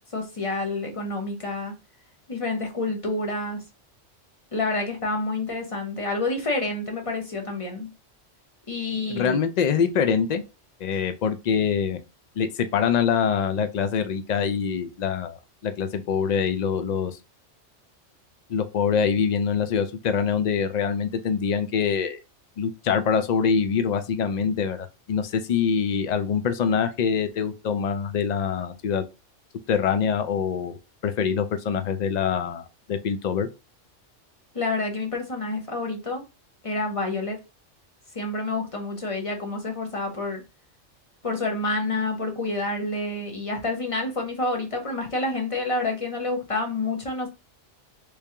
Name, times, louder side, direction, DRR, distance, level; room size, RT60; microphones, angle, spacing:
voice 1, 0.1-1.7 2.3-3.6 4.5-7.9 8.7-9.4 34.5-36.2 36.6-37.4 38.1-40.4 41.2-47.3, left 2 dB, 30° left, 0.8 m, -28 dB
voice 2, 9.1-10.4 10.8-12.0 12.4-15.4 15.6-17.2 18.5-22.2 22.6-29.0 29.7-30.8 31.0-32.6 32.9-33.5, left 7 dB, 75° left, 0.4 m, -24 dB
3.4 x 3.1 x 2.8 m
omnidirectional pair, 1.3 m